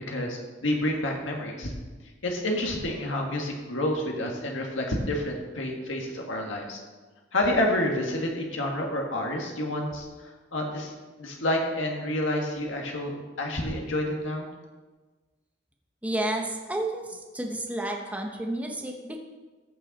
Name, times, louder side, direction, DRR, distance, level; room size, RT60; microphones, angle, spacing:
voice 1, 0.1-1.7 2.2-6.8 7.3-10.9 11.2-14.5, left 1 dB, 90° left, 1 dB, 1.7 m, -29 dB
voice 2, 16.0-19.2, right 1 dB, 10° right, 1 dB, 0.9 m, -31 dB
14.5 x 6.3 x 4.1 m, 1.3 s
head